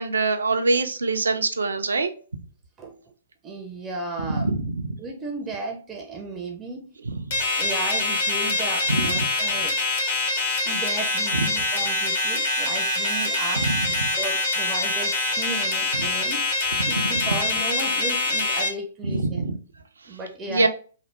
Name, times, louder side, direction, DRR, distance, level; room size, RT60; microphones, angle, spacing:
voice 1, 0.0-2.1 4.4-4.8 7.0-7.1 8.9-9.2 13.6-13.9 15.9-16.1 19.1-19.6 20.5-20.7, right 3 dB, 75° right, 8 dB, 0.4 m, -24 dB
voice 2, 3.4-4.5 5.0-6.9 7.6-9.8 10.6-13.7 14.2-16.5 16.9-19.5 20.1-20.7, right 3 dB, 20° right, 2 dB, 0.5 m, -34 dB
sound 1, 7.3-18.7, left 2 dB, 50° left, 0.9 m, -24 dB
3.2 x 2.0 x 2.9 m, 0.38 s
figure-of-eight pair, 120°, 0 cm